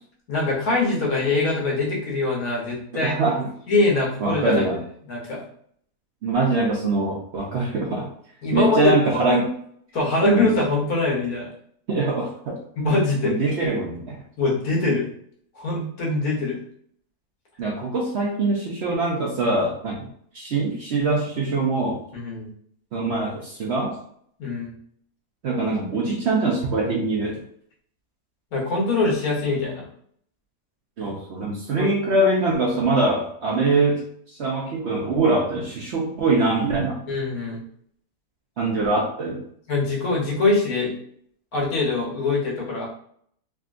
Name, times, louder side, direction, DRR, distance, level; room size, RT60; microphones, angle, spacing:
voice 1, 0.3-3.1 3.7-4.6 5.1-5.4 8.4-9.2 9.9-11.5 12.8-13.3 14.4-15.1 15.5-16.6 22.1-22.5 24.4-24.7 28.5-29.8 31.8-31.9 37.1-37.6 39.7-41.0 41.5-42.9, left 3 dB, 75° left, -3 dB, 1.5 m, -23 dB
voice 2, 2.9-3.5 4.2-4.8 6.2-8.1 8.5-9.5 10.2-10.5 11.9-12.6 13.2-14.1 17.6-20.0 20.3-22.0 22.9-23.9 25.4-27.4 31.0-34.0 34.4-37.0 38.6-39.4, right 2 dB, 60° right, -2 dB, 0.7 m, -23 dB
3.5 x 2.3 x 2.5 m, 0.63 s
omnidirectional pair, 1.6 m